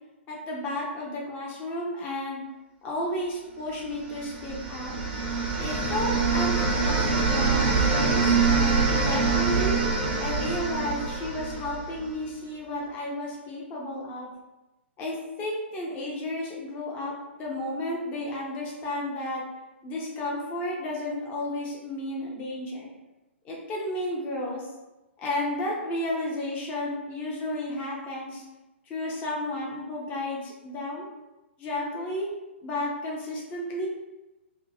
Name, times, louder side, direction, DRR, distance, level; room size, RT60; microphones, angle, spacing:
voice 1, 0.3-2.4 2.8-5.0 5.5-9.8 10.2-14.3 15.0-17.1 17.4-19.4 19.8-22.9 23.4-24.7 25.2-28.4 28.9-31.1 31.6-32.3 32.6-33.9, left 1 dB, 25° left, -3 dB, 0.6 m, -32 dB
sound 1, 4.1-12.1, right 4 dB, 40° right, 0.5 m, -25 dB
2.7 x 2.2 x 2.8 m, 1.0 s
figure-of-eight pair, 115°, 7 cm